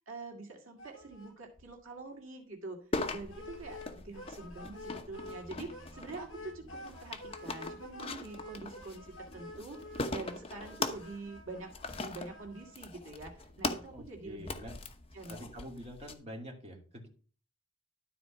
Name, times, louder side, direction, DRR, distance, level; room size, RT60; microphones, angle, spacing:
voice 1, 0.1-2.8 3.1-14.5 15.1-15.5, right 3 dB, 80° right, 3 dB, 2.0 m, -45 dB
sound 1, 0.8-1.3 1.6-1.7 2.0-2.1 3.3-5.4 5.7-12.7, left 2 dB, 75° left, 3.4 m, -49 dB
sound 2, 2.9-16.1, left 3 dB, 30° left, 1.0 m, -41 dB
voice 2, 13.9-14.7 15.3-17.1, equal, 30° right, 0 dB, 2.4 m, -46 dB
12.5 x 4.4 x 5.8 m, 0.40 s
head